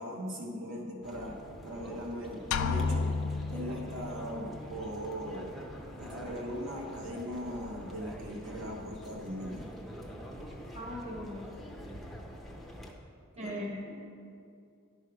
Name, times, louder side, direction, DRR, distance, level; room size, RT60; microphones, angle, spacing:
voice 1, 0.0-1.4 1.6-3.1 3.5-5.6 6.0-9.7 13.3-13.6, equal, 60° right, -1 dB, 1.1 m, -39 dB
sound 1, 1.0-12.9, equal, ahead, 0.7 m, -46 dB
sound 2, 2.5-4.4, left 4 dB, 70° left, 0.4 m, -31 dB
voice 2, 10.7-11.7 13.4-14.0, left 1 dB, 30° right, -2 dB, 1.2 m, -40 dB
11.0 x 5.5 x 4.7 m, 2.5 s
head